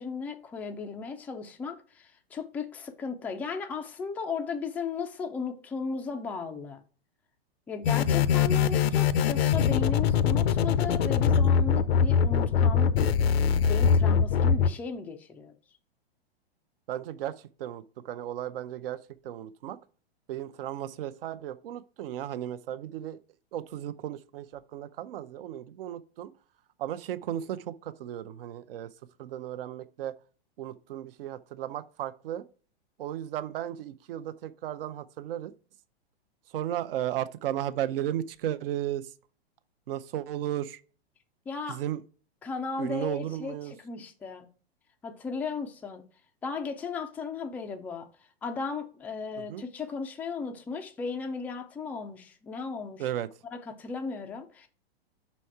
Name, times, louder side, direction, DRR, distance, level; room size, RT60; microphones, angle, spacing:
voice 1, 0.0-6.8 7.7-13.0 13.4-15.5 41.5-41.8 42.4-44.5 45.0-46.0 46.4-48.1 48.4-53.1 53.5-54.7, left 5 dB, 5° left, 0.3 m, -36 dB
sound 1, 7.8-14.7, left 7 dB, 70° left, 0.6 m, -23 dB
voice 2, 16.9-19.0 19.2-19.8 20.3-23.2 23.5-26.3 26.8-28.9 29.2-30.1 30.6-32.4 33.0-35.5 36.5-39.1 39.9-40.8 41.7-42.0 42.8-43.7 49.5-49.6 53.0-53.3, right 11 dB, 60° right, 0.6 m, -35 dB
5.6 x 4.2 x 4.6 m
hypercardioid pair, 125°, 32 cm